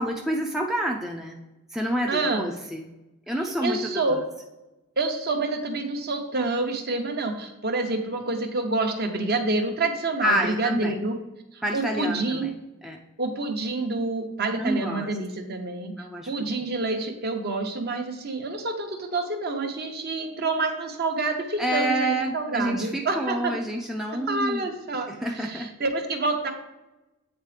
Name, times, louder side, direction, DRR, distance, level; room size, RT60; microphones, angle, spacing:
voice 1, 0.0-1.4 1.7-2.8 3.3-4.0 10.2-10.9 11.6-12.5 12.8-13.0 14.5-15.1 16.0-16.3 21.6-24.7 25.1-25.7, right 1 dB, ahead, 0 dB, 0.4 m, -28 dB
voice 2, 2.1-2.4 3.6-4.2 5.0-11.2 11.5-12.5 13.2-15.9 16.2-23.5 24.3-26.5, right 3 dB, 45° right, 4 dB, 0.8 m, -28 dB
8.0 x 3.9 x 3.2 m, 1.0 s
head